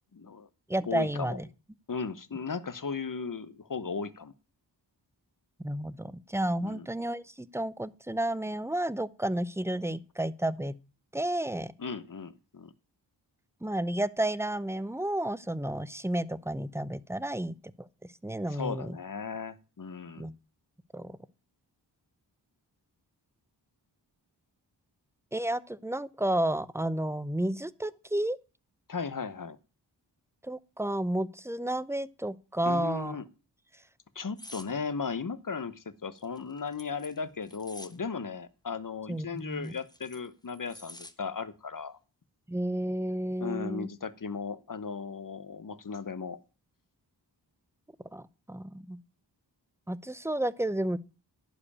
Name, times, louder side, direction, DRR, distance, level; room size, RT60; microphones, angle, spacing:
voice 1, 0.1-0.5 0.9-1.4 1.9-4.3 6.6-6.9 11.8-12.7 18.5-20.3 28.9-29.6 32.7-33.3 34.1-42.0 43.4-46.4, left 5 dB, 45° left, 1.1 m, -36 dB
voice 2, 0.7-1.5 5.6-10.8 11.1-11.7 13.6-19.0 20.2-20.3 20.9-21.2 25.3-28.4 30.4-33.2 39.1-39.8 42.5-43.9 48.1-49.0 49.9-51.0, right 1 dB, 5° right, 0.6 m, -31 dB
sound 1, 34.4-34.7 36.2-38.0 39.4-41.1 41.5-41.8, left 1 dB, 10° left, 1.1 m, -49 dB
11.5 x 5.0 x 8.6 m
cardioid pair, 50°, 43 cm